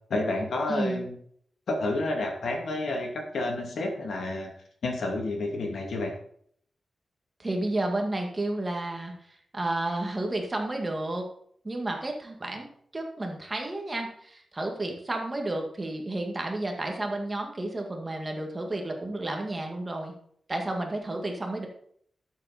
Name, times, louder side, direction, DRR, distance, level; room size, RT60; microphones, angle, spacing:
voice 1, 0.1-1.2 1.7-4.5 4.8-6.1, left 2 dB, 75° left, 2 dB, 2.5 m, -30 dB
voice 2, 0.7-1.0 7.4-11.3 11.6-12.7 12.9-20.1 20.5-21.7, right 2 dB, 20° right, 2 dB, 2.0 m, -31 dB
12.5 x 7.5 x 4.3 m, 0.63 s
wide cardioid pair, 170°, 0 cm